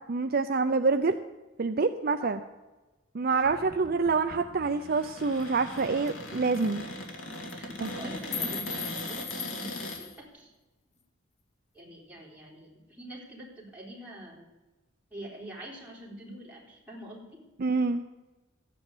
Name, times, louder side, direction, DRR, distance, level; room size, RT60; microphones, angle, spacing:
voice 1, 0.1-1.1 1.6-2.4 3.1-6.8 7.8-7.9 17.6-18.0, right 4 dB, 50° right, 8 dB, 0.5 m, -26 dB
Cupboard open or close, 3.3-10.0, left 1 dB, 75° left, 2.4 m, -40 dB
sound 1, 5.4-5.5 5.8-5.9 6.1-6.3 6.5-6.7 7.3-7.5 7.9-10.2, left 6 dB, 35° left, 1.2 m, -38 dB
voice 2, 7.5-10.5 11.7-14.5 15.1-17.5, right 1 dB, 10° right, -4 dB, 3.8 m, -45 dB
14.0 x 9.2 x 7.9 m, 1.1 s
head